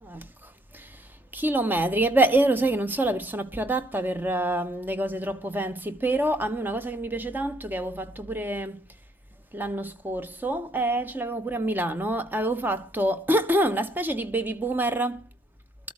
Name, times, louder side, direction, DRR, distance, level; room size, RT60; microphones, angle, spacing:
voice 1, 1.3-8.8 9.5-15.2, right 1 dB, 10° right, 0.7 m, -26 dB
22.0 x 13.5 x 3.0 m
head